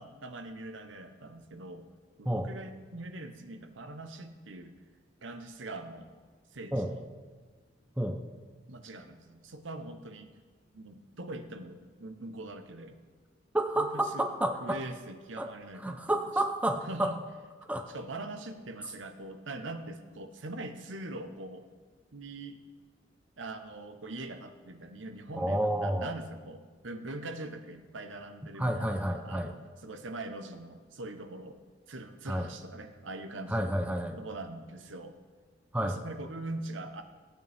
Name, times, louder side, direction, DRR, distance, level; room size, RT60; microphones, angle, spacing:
voice 1, 0.0-1.9 2.2-4.7 5.2-6.1 6.5-7.0 8.7-10.4 10.7-13.0 13.8-14.3 14.6-16.4 16.8-17.2 17.9-21.7 22.1-22.6 23.4-31.6 31.9-33.7 34.2-35.2 35.8-37.0, right 2 dB, 85° right, 7 dB, 0.9 m, -42 dB
voice 2, 13.5-14.8 15.4-15.5 15.8-17.1 17.7-17.9 25.3-26.1 28.6-29.5 32.3-32.5 33.5-34.2 35.7-36.0, right 1 dB, 5° right, 5 dB, 0.6 m, -30 dB
17.5 x 9.1 x 3.5 m, 1.5 s
head